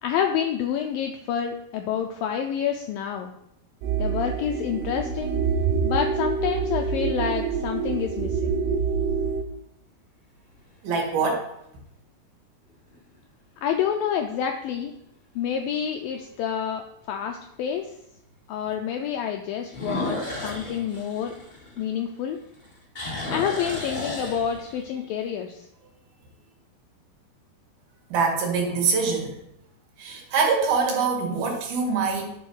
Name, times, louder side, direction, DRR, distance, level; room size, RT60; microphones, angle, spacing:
voice 1, 0.0-3.3 4.0-5.4 5.8-8.6 13.6-14.9 15.4-17.9 18.5-21.3 21.8-22.4 23.3-25.7, left 8 dB, 85° left, 4 dB, 2.0 m, -28 dB
sound 1, 3.8-9.4, right 5 dB, 80° right, 2.8 m, -26 dB
sound 2, 6.3-6.7 7.4-7.5 12.7-13.2 13.6-13.7 14.3-14.4 14.6-14.7 16.2-16.3 19.7-22.2 22.5-24.9, left 2 dB, 25° left, 0.9 m, -33 dB
voice 2, 10.8-11.5 28.1-29.4 30.0-32.4, right 4 dB, 65° right, 0 dB, 3.6 m, -24 dB
10.5 x 5.5 x 6.1 m, 0.78 s
omnidirectional pair, 4.8 m